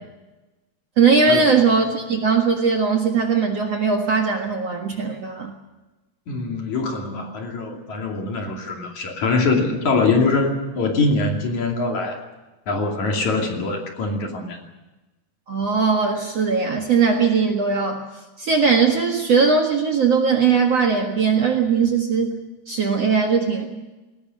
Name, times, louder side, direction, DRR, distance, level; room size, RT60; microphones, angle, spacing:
voice 1, 1.0-5.5 15.5-18.1 18.4-22.4 22.7-23.8, right 5 dB, 50° right, 2 dB, 2.3 m, -19 dB
voice 2, 6.3-12.2 12.7-14.6, left 3 dB, 50° left, 2 dB, 3.8 m, -23 dB
20.5 x 19.0 x 7.8 m, 1.1 s
omnidirectional pair, 4.5 m